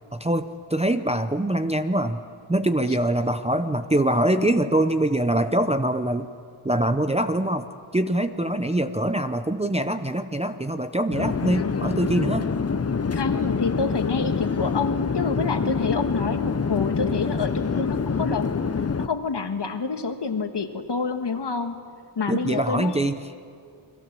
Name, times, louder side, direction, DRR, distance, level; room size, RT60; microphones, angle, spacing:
voice 1, 0.1-2.2 2.5-6.3 6.6-12.5 22.3-23.2, right 1 dB, 15° right, 8 dB, 0.6 m, -24 dB
Conversation / Chatter / Fixed-wing aircraft airplane, 11.1-19.1, left 5 dB, 30° left, 0.8 m, -26 dB
voice 2, 13.1-18.6 19.0-21.8 22.1-23.1, left 4 dB, 55° left, 7 dB, 1.7 m, -27 dB
29.0 x 22.0 x 7.5 m, 2.4 s
wide cardioid pair, 120°, 49 cm